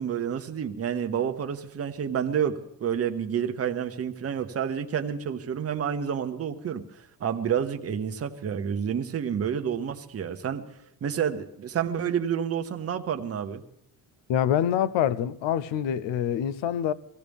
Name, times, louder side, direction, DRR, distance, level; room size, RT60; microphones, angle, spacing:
voice 1, 0.0-10.6 11.0-13.6, right 8 dB, 35° right, 0.9 m, -29 dB
voice 2, 14.3-16.9, left 10 dB, 85° left, 0.7 m, -25 dB
23.5 x 16.0 x 3.5 m
cardioid pair, 150°, 43 cm